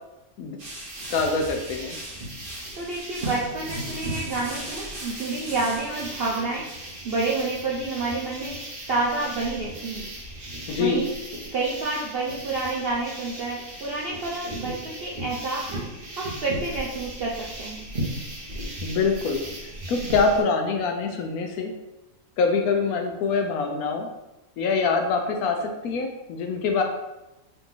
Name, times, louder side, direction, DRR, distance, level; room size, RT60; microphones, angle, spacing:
sound 1, 0.6-20.4, right 1 dB, 40° right, 1.1 m, -36 dB
voice 1, 1.1-2.0 10.7-11.0 18.8-19.4 19.9-21.7 22.4-24.1 24.6-26.8, left 4 dB, 75° left, 4 dB, 1.0 m, -24 dB
voice 2, 2.7-8.6 8.9-10.1 10.8-11.1 11.5-15.8 16.2-17.8, right 3 dB, 65° right, -4 dB, 0.6 m, -29 dB
3.9 x 2.9 x 3.7 m, 0.98 s
omnidirectional pair, 1.6 m